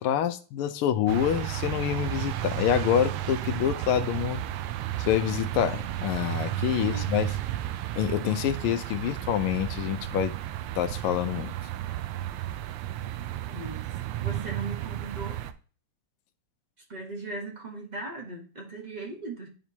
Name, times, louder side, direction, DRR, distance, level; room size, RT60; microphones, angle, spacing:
voice 1, 0.0-4.4 5.0-7.3 7.9-10.3 10.8-11.5, left 10 dB, 80° left, 9 dB, 1.5 m, -27 dB
sound 1, 1.1-15.5, right 13 dB, 90° right, 1.5 m, -33 dB
voice 2, 13.5-13.9 14.2-15.5 16.8-19.5, right 2 dB, 35° right, 0 dB, 0.7 m, -38 dB
11.0 x 4.4 x 2.8 m, 0.38 s
omnidirectional pair, 2.4 m